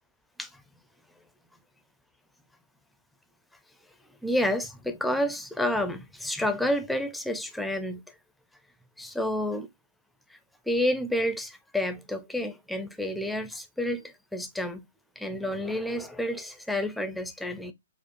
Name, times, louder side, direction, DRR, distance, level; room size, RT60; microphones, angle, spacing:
voice 1, 4.2-8.0 9.0-9.7 10.7-14.8 15.2-17.7, left 1 dB, ahead, 0.4 m, -29 dB
4.7 x 2.0 x 2.9 m
figure-of-eight pair, 120°, 0 cm